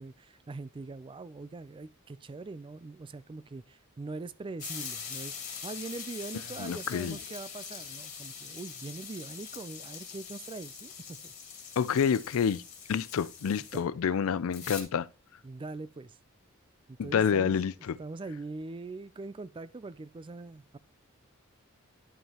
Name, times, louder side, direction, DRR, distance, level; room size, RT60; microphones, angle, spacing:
voice 1, 0.0-5.4 5.6-11.3 13.7-13.8 15.4-16.2 16.9-20.8, right 3 dB, 25° right, 0.3 m, -42 dB
sound 1, 4.6-13.8 14.5-14.8, left 6 dB, 35° left, 2.0 m, -43 dB
voice 2, 6.6-7.2 11.8-12.6 12.9-15.1 17.0-18.0, left 7 dB, 75° left, 0.4 m, -28 dB
11.0 x 5.5 x 2.9 m
head